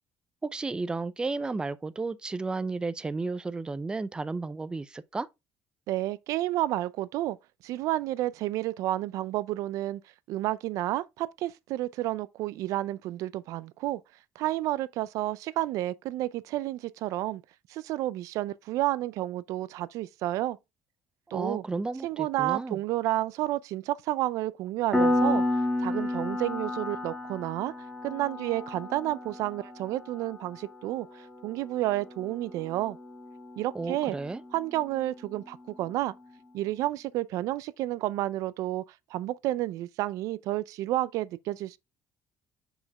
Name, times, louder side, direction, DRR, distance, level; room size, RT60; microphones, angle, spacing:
voice 1, 0.4-5.3 21.3-22.8 33.7-34.4, right 3 dB, 15° right, 0.5 m, -33 dB
voice 2, 5.9-7.4 7.6-10.0 10.3-14.0 14.4-17.4 17.7-20.6 21.3-21.6 22.0-25.4 25.8-27.7 28.0-33.0 33.6-34.2 34.5-36.1 36.5-38.8 39.1-41.8, right 15 dB, 75° right, 0.5 m, -30 dB
Piano, 24.9-35.3, left 1 dB, ahead, 2.2 m, -32 dB
6.4 x 5.0 x 3.5 m
cardioid pair, 120°, 6 cm